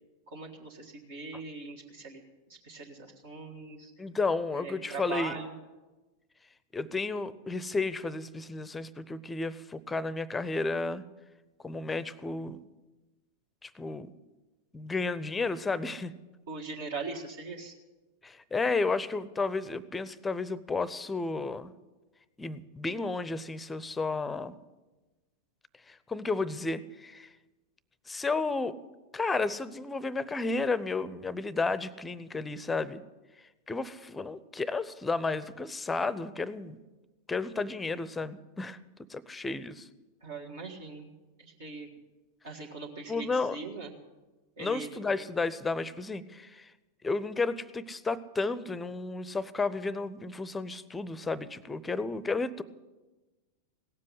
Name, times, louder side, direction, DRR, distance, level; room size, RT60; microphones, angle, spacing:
voice 1, 0.3-2.2 2.5-3.9 4.5-5.6 16.5-17.7 40.2-41.1 41.4-41.9 42.4-43.9 44.6-44.9, right 3 dB, 60° right, -1 dB, 1.7 m, -40 dB
voice 2, 4.0-5.4 6.7-11.0 11.6-12.6 13.6-14.1 14.7-16.1 18.2-21.7 22.4-24.5 25.9-27.3 28.1-28.8 29.1-33.0 33.7-36.8 37.3-38.8 39.1-39.9 43.1-43.6 44.6-46.7 47.0-52.6, left 3 dB, 10° left, 18 dB, 0.6 m, -32 dB
17.5 x 7.6 x 9.8 m, 1.2 s
figure-of-eight pair, 90°, 0 cm